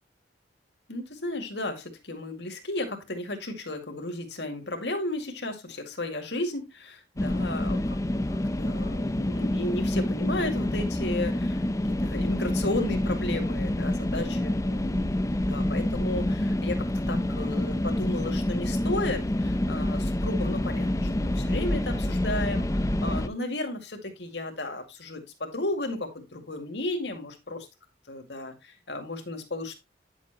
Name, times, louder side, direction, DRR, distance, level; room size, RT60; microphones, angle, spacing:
voice 1, 0.9-15.1 15.5-16.8 17.1-27.7 28.1-29.7, left 2 dB, 70° left, 5 dB, 2.2 m, -34 dB
sound 1, 7.2-23.3, left 1 dB, 20° left, 0.6 m, -27 dB
10.0 x 7.5 x 3.0 m, 0.22 s
head